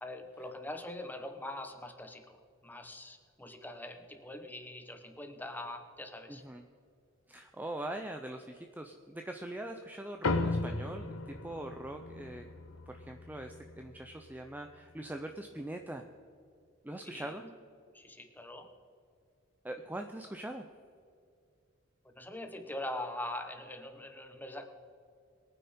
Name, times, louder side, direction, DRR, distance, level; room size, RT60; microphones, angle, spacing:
voice 1, 0.0-6.4 17.0-17.5 17.9-18.7 22.0-24.7, left 1 dB, 10° left, 6 dB, 1.1 m, -43 dB
voice 2, 6.3-6.6 7.3-12.5 12.9-16.0 16.8-17.4 19.6-20.7, right 1 dB, 10° right, 4 dB, 0.5 m, -42 dB
sound 1, 10.2-15.0, left 3 dB, 90° left, 1.0 m, -37 dB
22.5 x 9.4 x 4.3 m, 2.4 s
head